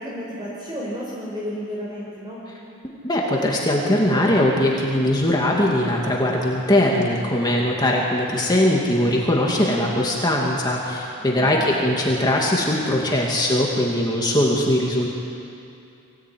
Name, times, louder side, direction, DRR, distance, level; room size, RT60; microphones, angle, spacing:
voice 1, 0.0-2.4 11.2-11.7, equal, 20° right, -5 dB, 4.8 m, -32 dB
voice 2, 3.0-15.1, left 1 dB, 20° left, -2 dB, 2.3 m, -20 dB
24.0 x 17.5 x 9.4 m, 2.7 s
head